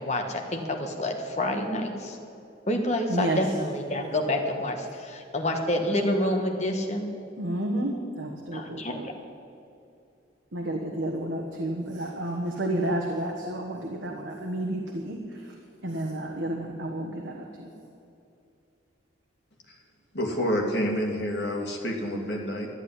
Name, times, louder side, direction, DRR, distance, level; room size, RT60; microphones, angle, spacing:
voice 1, 0.0-2.2 2.7-7.1 8.5-9.1, left 1 dB, 35° left, 2 dB, 1.6 m, -28 dB
voice 2, 7.4-9.1 10.5-15.2 15.8-17.7, right 1 dB, 65° right, 0 dB, 1.4 m, -31 dB
voice 3, 20.1-22.7, equal, 55° left, 0 dB, 2.4 m, -28 dB
13.0 x 9.1 x 9.8 m, 2.6 s
head